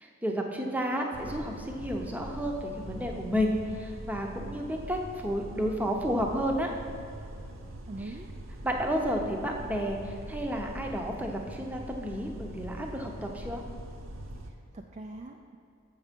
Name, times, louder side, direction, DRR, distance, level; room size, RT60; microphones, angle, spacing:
voice 1, 0.0-6.7 8.6-13.6, equal, 10° right, 1 dB, 0.7 m, -31 dB
sound 1, 1.1-14.5, right 1 dB, 75° right, 0.7 m, -42 dB
voice 2, 7.8-8.3 14.5-15.6, right 2 dB, 30° right, 2 dB, 0.3 m, -43 dB
7.4 x 6.5 x 5.1 m, 2.5 s
head